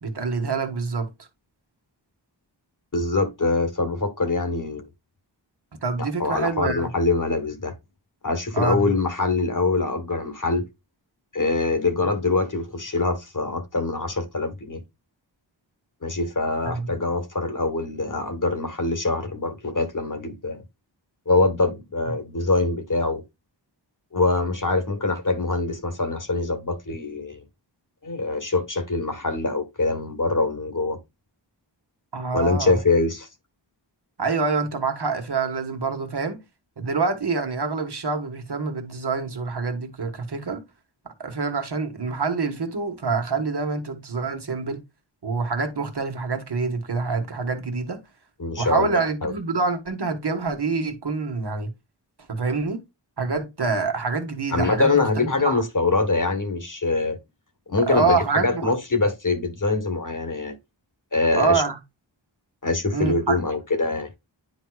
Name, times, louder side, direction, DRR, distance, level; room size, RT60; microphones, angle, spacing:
voice 1, 0.0-1.1 5.8-6.9 8.5-8.9 16.6-16.9 32.1-32.8 34.2-36.4 36.8-40.6 41.2-44.8 45.2-48.0 48.6-51.7 52.3-52.8 53.2-55.6 57.9-58.7 61.4-61.8 62.9-63.4, right 4 dB, 60° right, 1.4 m, -26 dB
voice 2, 2.9-4.9 6.0-7.7 8.2-10.6 11.3-14.8 16.0-20.6 21.3-23.2 24.1-27.4 28.0-31.0 32.3-33.3 48.4-49.3 54.5-57.2 57.7-60.5 61.1-61.6 62.6-64.1, left 3 dB, 40° left, 1.3 m, -24 dB
10.0 x 4.7 x 2.3 m
wide cardioid pair, 55°, 46 cm